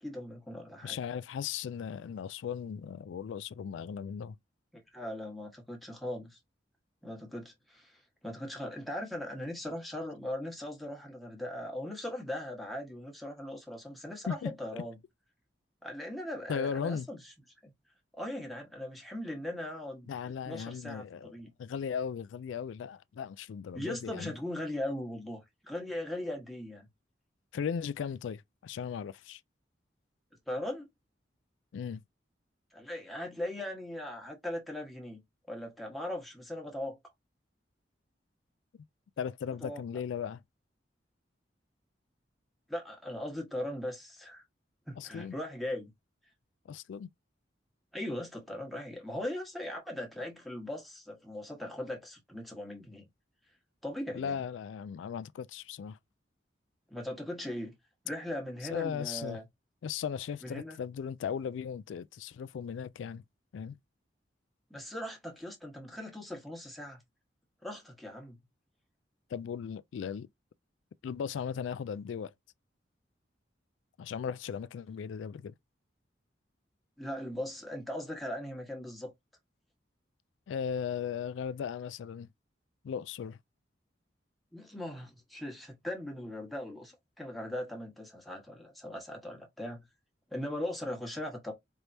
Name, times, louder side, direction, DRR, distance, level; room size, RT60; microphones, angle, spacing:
voice 1, 0.0-1.0 4.9-6.4 7.0-15.0 15.8-17.3 17.6-17.7 18.1-20.1 20.4-21.5 23.7-26.9 30.5-30.9 32.7-35.2 35.5-37.0 39.6-39.8 42.7-44.4 44.9-45.9 47.9-53.1 53.8-54.4 56.9-57.7 58.0-59.4 60.4-60.8 64.7-67.0 67.6-68.4 77.0-79.1 84.5-89.9 90.3-91.5, left 1 dB, ahead, 1.3 m, -39 dB
voice 2, 0.8-4.4 14.3-14.8 16.5-17.1 20.1-24.3 27.5-29.4 31.7-32.0 39.2-40.4 45.0-45.4 46.7-47.1 54.1-56.0 58.7-59.4 59.8-63.2 63.5-63.8 69.3-70.3 71.0-72.3 74.0-75.5 80.5-82.3 82.8-83.4, left 7 dB, 90° left, 0.3 m, -37 dB
4.5 x 3.3 x 2.6 m
head